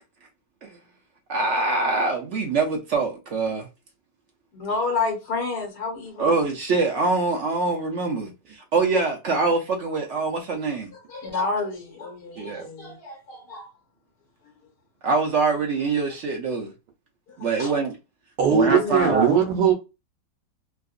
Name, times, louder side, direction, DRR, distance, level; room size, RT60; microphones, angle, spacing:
voice 1, 1.3-3.7 6.2-10.9 12.4-12.7 15.0-16.7 17.4-17.9 18.5-19.3, right 3 dB, 65° right, 0.7 m, -24 dB
voice 2, 4.5-6.3 10.9-13.7 17.3-17.7 18.6-19.0, left 4 dB, 70° left, 1.8 m, -30 dB
voice 3, 18.4-19.7, right 7 dB, 90° right, 1.4 m, -19 dB
3.7 x 2.5 x 2.4 m
omnidirectional pair, 1.8 m